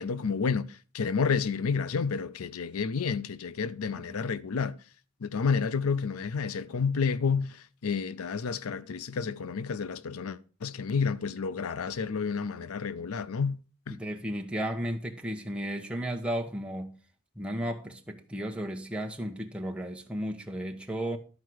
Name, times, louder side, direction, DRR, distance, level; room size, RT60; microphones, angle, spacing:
voice 1, 0.0-4.8 5.2-13.6 13.9-14.0, left 5 dB, 90° left, 0.5 m, -30 dB
voice 2, 13.9-16.9 17.4-21.2, right 1 dB, 5° right, 1.1 m, -34 dB
12.5 x 4.6 x 6.2 m
head